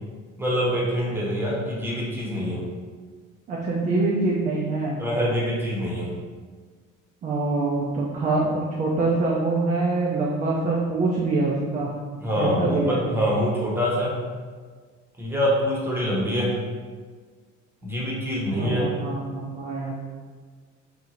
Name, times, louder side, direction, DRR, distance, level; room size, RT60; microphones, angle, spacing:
voice 1, 0.4-2.6 5.0-6.1 12.2-14.1 15.2-16.6 17.8-18.9, equal, 5° right, -5 dB, 0.8 m, -25 dB
voice 2, 3.5-5.0 7.2-11.9 12.3-13.0 18.5-19.9, right 3 dB, 20° right, -3 dB, 0.3 m, -25 dB
2.6 x 2.0 x 2.9 m, 1.5 s
figure-of-eight pair, 55°, 37 cm